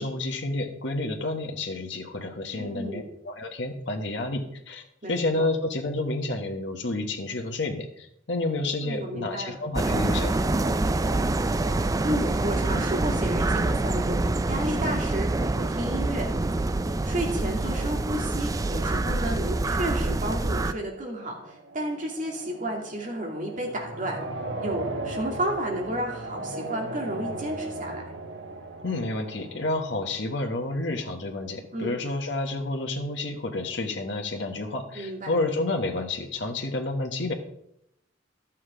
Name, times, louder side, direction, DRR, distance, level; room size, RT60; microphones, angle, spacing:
voice 1, 0.0-10.3 28.8-37.3, left 2 dB, 70° left, 3 dB, 1.4 m, -30 dB
voice 2, 2.5-3.0 5.0-5.5 8.8-9.6 12.0-14.2 14.5-16.3 17.0-24.2 24.6-28.1 31.7-31.9 34.9-35.3, right 1 dB, 45° right, 0 dB, 2.4 m, -32 dB
sound 1, 9.7-20.7, right 2 dB, 20° right, 0.4 m, -26 dB
sound 2, 19.7-30.6, right 2 dB, 90° right, 1.4 m, -37 dB
12.0 x 7.5 x 5.0 m, 0.77 s
head